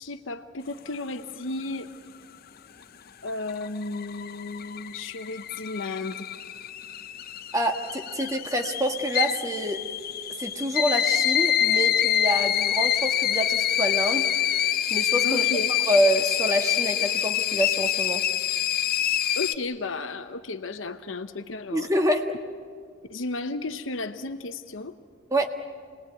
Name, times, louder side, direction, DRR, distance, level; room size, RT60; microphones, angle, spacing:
voice 1, 0.0-1.9 3.2-6.3 15.2-15.7 19.3-21.9 23.1-25.0, left 3 dB, 70° left, 7 dB, 0.9 m, -33 dB
sound 1, 3.3-19.5, left 11 dB, 50° left, 0.6 m, -26 dB
voice 2, 7.5-9.8 10.4-14.3 14.9-15.4 15.9-18.2 21.7-22.2 25.3-25.5, equal, 15° right, 4 dB, 1.6 m, -26 dB
28.0 x 20.0 x 9.2 m, 2.1 s
head